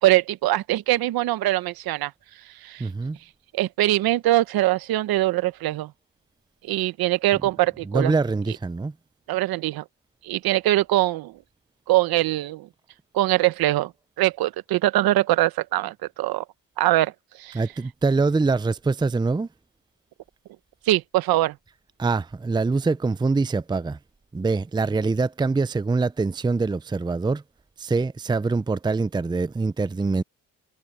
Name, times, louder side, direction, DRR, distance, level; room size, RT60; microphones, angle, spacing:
voice 1, 0.0-2.1 2.6-2.9 3.5-5.9 6.6-8.1 9.3-9.8 10.2-11.3 11.9-12.7 13.1-13.9 14.2-16.4 16.8-17.1 17.4-17.6 20.9-21.5, right 16 dB, 75° right, 1.0 m, -22 dB
voice 2, 2.8-3.2 7.8-8.9 17.5-19.5 22.0-24.0 24.3-27.4 27.8-30.2, right 3 dB, 10° right, 0.6 m, -24 dB
supercardioid pair, 75°, 37 cm